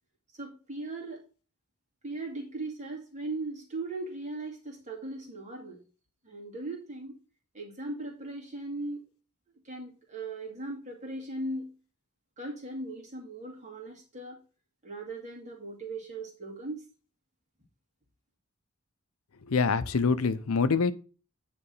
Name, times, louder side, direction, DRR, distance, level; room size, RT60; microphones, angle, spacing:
voice 1, 0.3-1.2 2.0-5.8 6.2-7.2 7.5-9.0 9.6-11.7 12.4-14.4 14.8-16.8, right 2 dB, 35° right, 2.3 m, -38 dB
voice 2, 19.4-20.9, left 4 dB, 90° left, 0.7 m, -25 dB
9.6 x 3.4 x 5.5 m
head